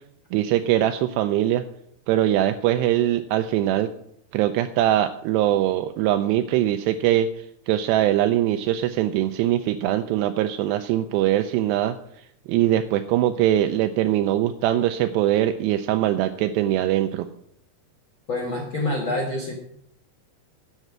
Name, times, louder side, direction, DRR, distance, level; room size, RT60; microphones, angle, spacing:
voice 1, 0.3-1.6 2.1-3.9 4.3-12.0 12.5-17.3, right 12 dB, 85° right, 8 dB, 2.6 m, -22 dB
voice 2, 18.3-19.5, left 2 dB, 80° left, -1 dB, 1.1 m, -26 dB
11.0 x 7.9 x 6.0 m, 0.70 s
omnidirectional pair, 5.0 m